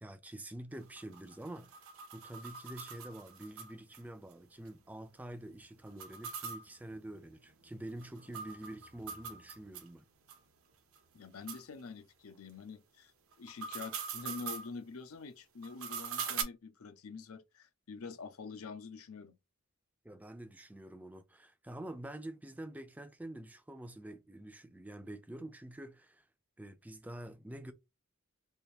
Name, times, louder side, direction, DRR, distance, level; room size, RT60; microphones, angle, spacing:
voice 1, 0.0-1.7 2.1-10.0 20.0-26.3 26.6-27.7, right 1 dB, 5° right, 0.4 m, -47 dB
sound 1, 0.7-4.0 4.3-4.4 4.7-4.8 5.9-9.9 10.3-10.4 10.9-11.0 11.5-11.6 13.3-14.7 15.6-16.4, right 7 dB, 80° right, 0.8 m, -43 dB
voice 2, 11.1-13.1 13.4-19.4, left 4 dB, 90° left, 0.6 m, -46 dB
3.4 x 2.6 x 2.8 m
head